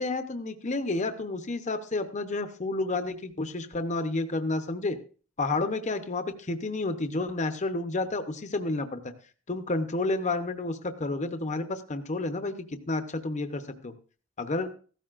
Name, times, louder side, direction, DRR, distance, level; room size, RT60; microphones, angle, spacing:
voice 1, 0.0-5.0 5.4-9.0 9.5-12.5 12.9-13.9 14.4-14.7, left 2 dB, 35° left, 8 dB, 0.8 m, -30 dB
15.5 x 13.5 x 2.5 m, 0.40 s
head